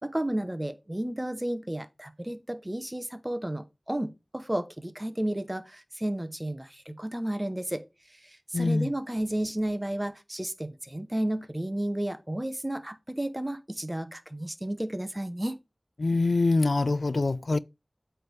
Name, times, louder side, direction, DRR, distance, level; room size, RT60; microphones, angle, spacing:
voice 1, 0.0-7.8 8.2-15.6, right 1 dB, 20° right, 0.9 m, -32 dB
voice 2, 8.5-8.9 16.0-17.6, left 3 dB, 85° left, 0.3 m, -24 dB
8.6 x 3.4 x 4.7 m
wide cardioid pair, 55°, 0 cm